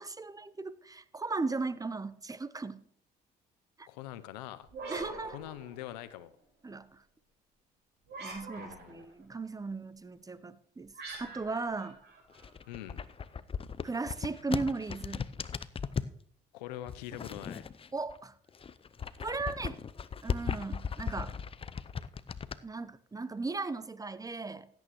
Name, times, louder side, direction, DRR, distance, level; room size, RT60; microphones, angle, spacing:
voice 1, 0.0-2.8 3.8-3.9 4.9-5.3 6.6-7.0 8.2-10.9 11.2-12.0 13.8-15.3 17.9-18.4 19.2-19.8 20.2-21.4 22.6-24.7, right 3 dB, 15° right, 0.7 m, -37 dB
voice 2, 3.9-4.7 5.2-6.3 8.6-9.1 12.7-13.0 16.5-17.6, left 13 dB, 85° left, 0.6 m, -43 dB
sound 1, 4.6-6.2 8.1-9.1 10.9-12.8, right 3 dB, 55° right, 5.3 m, -45 dB
sound 2, 12.3-16.2 16.9-18.2 18.5-22.6, left 6 dB, 25° left, 0.6 m, -37 dB
16.0 x 9.0 x 3.1 m
hypercardioid pair, 60°, 20 cm